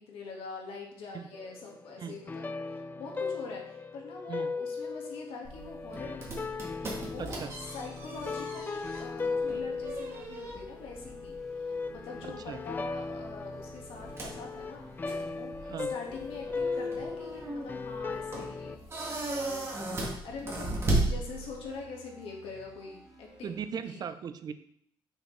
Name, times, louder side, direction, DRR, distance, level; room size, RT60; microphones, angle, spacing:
voice 1, 0.0-6.5 7.0-7.3 7.7-14.9 15.3-15.5 15.9-18.8 19.2-24.0, left 4 dB, 85° left, 0 dB, 1.7 m, -44 dB
sound 1, 1.3-18.8, left 4 dB, 20° left, 0.3 m, -37 dB
sound 2, 5.4-21.8, right 2 dB, 30° right, 1.8 m, -37 dB
voice 2, 7.2-7.5 12.3-12.6 15.7-15.9 23.4-24.5, right 7 dB, 50° right, 11 dB, 0.5 m, -38 dB
sound 3, 10.9-23.6, right 1 dB, 5° right, 1.8 m, -55 dB
6.4 x 6.2 x 3.2 m, 0.69 s
cardioid pair, 120°, 9 cm